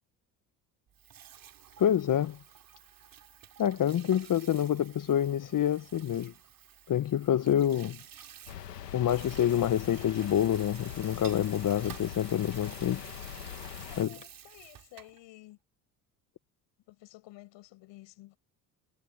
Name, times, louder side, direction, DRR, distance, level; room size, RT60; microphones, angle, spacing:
Water tap faucet / Sink (filling or washing), 0.9-15.2, right 9 dB, 45° right, 3.3 m, -51 dB
voice 1, 1.8-2.4 3.6-6.3 6.9-8.0 8.9-13.0 14.0-14.2, left 10 dB, 40° left, 1.4 m, -27 dB
sound 1, 8.5-14.0, left 11 dB, 90° left, 2.4 m, -43 dB
voice 2, 13.9-15.6 16.9-18.4, left 18 dB, 65° left, 7.4 m, -52 dB
hypercardioid pair, 60°, 47 cm